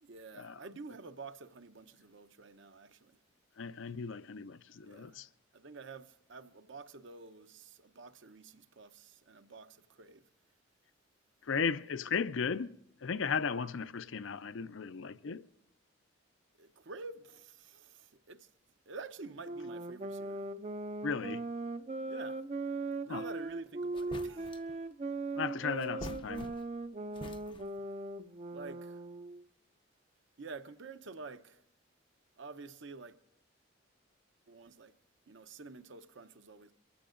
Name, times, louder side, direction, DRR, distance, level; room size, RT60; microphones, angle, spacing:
voice 1, 0.0-3.2 4.8-5.3 5.5-10.2 16.6-18.5 18.9-20.5 22.1-22.4 23.0-24.5 28.5-29.0 30.4-31.6 32.4-33.2 34.5-34.9 35.3-36.7, right 4 dB, 65° right, 0.7 m, -49 dB
voice 2, 3.6-5.3 11.4-15.5 21.0-21.4 23.1-23.2 25.4-26.5, left 5 dB, 75° left, 0.5 m, -36 dB
sound 1, 19.4-29.4, right 2 dB, 30° right, 0.4 m, -39 dB
sound 2, 23.5-23.6 23.9-24.8 25.8-26.8 27.1-27.9, left 1 dB, 25° left, 0.5 m, -47 dB
23.0 x 15.5 x 2.5 m
head